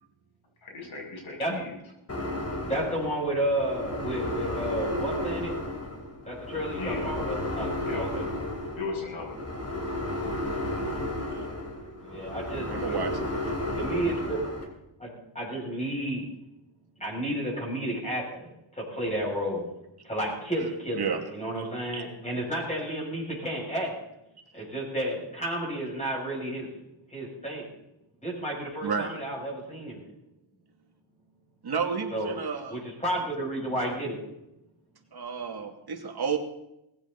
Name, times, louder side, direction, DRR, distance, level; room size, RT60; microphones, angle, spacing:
voice 1, 0.6-1.7 6.7-7.1 7.7-8.1 8.8-9.4, left 4 dB, 70° left, -2 dB, 7.6 m, -36 dB
sound 1, 2.1-14.6, left 1 dB, 30° left, 3.5 m, -33 dB
voice 2, 2.6-5.5 6.3-8.2 12.0-13.0 13.7-14.4 15.0-16.3 17.0-19.7 20.0-21.0 21.3-23.9 24.5-26.7 27.1-27.7 28.2-30.1 32.1-32.4 32.7-34.2, right 1 dB, 15° left, -4 dB, 7.6 m, -32 dB
voice 3, 12.7-13.5 20.9-21.2 21.9-22.0 28.8-29.1 31.6-32.8 35.1-36.4, right 6 dB, 50° right, 3 dB, 2.7 m, -31 dB
20.0 x 15.5 x 4.2 m, 0.85 s
wide cardioid pair, 120°, 49 cm